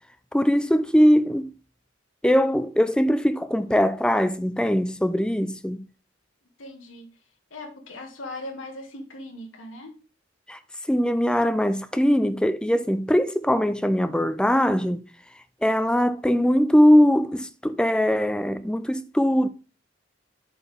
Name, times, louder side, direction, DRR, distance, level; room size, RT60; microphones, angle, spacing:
voice 1, 0.3-1.5 2.2-5.9 10.5-10.6 10.9-15.1 15.6-19.5, equal, 5° left, 0.5 m, -21 dB
voice 2, 6.6-7.1 7.5-10.0, left 1 dB, 80° left, 1.7 m, -39 dB
10.5 x 4.4 x 3.4 m
head